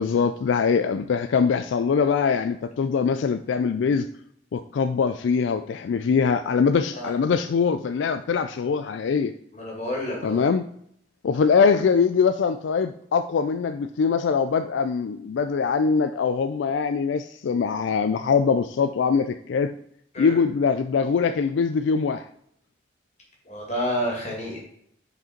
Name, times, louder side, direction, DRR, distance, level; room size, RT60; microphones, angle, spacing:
voice 1, 0.0-4.1 4.5-9.3 10.2-10.7 11.2-19.8 20.2-22.2, left 5 dB, 75° left, 10 dB, 0.3 m, -23 dB
voice 2, 9.5-10.5 20.1-20.4 23.5-24.6, equal, 35° left, -1 dB, 2.3 m, -29 dB
6.4 x 5.0 x 4.4 m, 0.69 s
head